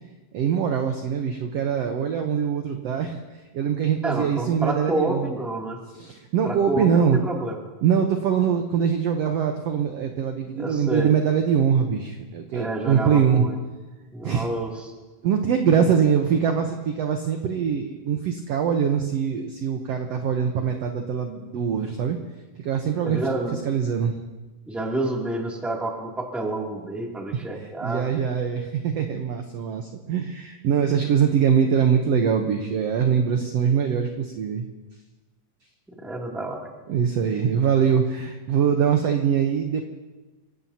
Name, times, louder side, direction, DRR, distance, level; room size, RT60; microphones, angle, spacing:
voice 1, 0.3-3.2 3.5-5.3 5.9-7.2 7.8-13.4 14.2-14.5 15.2-22.2 22.6-23.2 23.5-24.2 27.3-34.7 36.9-39.8, right 7 dB, 75° right, 4 dB, 1.5 m, -23 dB
voice 2, 4.0-5.8 6.4-7.5 10.5-11.1 12.5-13.5 14.1-14.9 23.0-23.6 24.7-28.1 36.0-36.7, right 2 dB, ahead, -2 dB, 1.9 m, -29 dB
29.0 x 16.5 x 2.9 m, 1.2 s
omnidirectional pair, 4.1 m